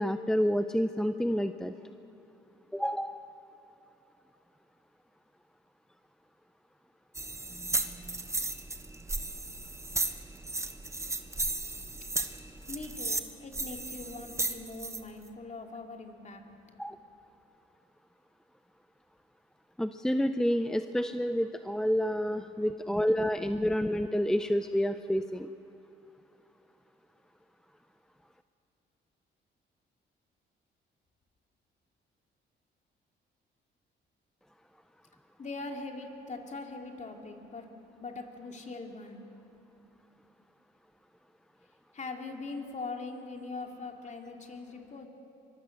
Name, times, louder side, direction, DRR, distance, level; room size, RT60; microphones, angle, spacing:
voice 1, 0.0-1.7 2.7-3.2 16.8-17.0 19.8-25.5, equal, 5° left, 9 dB, 0.6 m, -29 dB
sound 1, 7.1-15.0, right 2 dB, 15° right, 1.2 m, -35 dB
voice 2, 12.7-16.8 22.2-22.6 35.4-37.7 38.0-39.2 41.9-45.1, left 3 dB, 35° left, 3 dB, 2.9 m, -42 dB
24.0 x 23.0 x 6.7 m, 2.9 s
cardioid pair, 90°, 20 cm